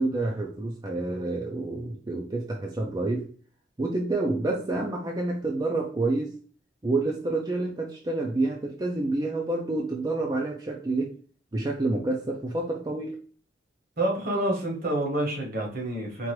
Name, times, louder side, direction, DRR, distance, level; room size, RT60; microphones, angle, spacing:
voice 1, 0.0-3.3 3.8-6.3 6.8-11.1 11.5-13.2, right 2 dB, 20° right, 0 dB, 0.4 m, -28 dB
voice 2, 14.0-16.3, right 1 dB, 50° right, 1 dB, 1.1 m, -28 dB
4.5 x 2.5 x 3.1 m, 0.44 s
head